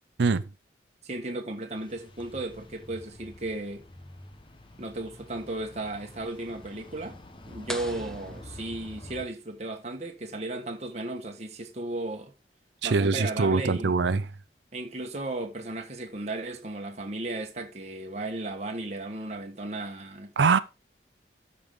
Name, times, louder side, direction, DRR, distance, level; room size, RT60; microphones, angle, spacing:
voice 1, 1.0-3.8 4.8-7.2 7.5-12.3 12.8-13.9 14.7-20.3, right 2 dB, 40° right, 1.3 m, -35 dB
sound 1, 1.7-9.3, left 1 dB, 25° left, 1.1 m, -47 dB
sound 2, 7.7-9.4, equal, 5° left, 0.6 m, -41 dB
voice 2, 12.8-14.3 20.4-20.6, right 4 dB, 75° right, 0.5 m, -23 dB
13.0 x 5.4 x 3.7 m
head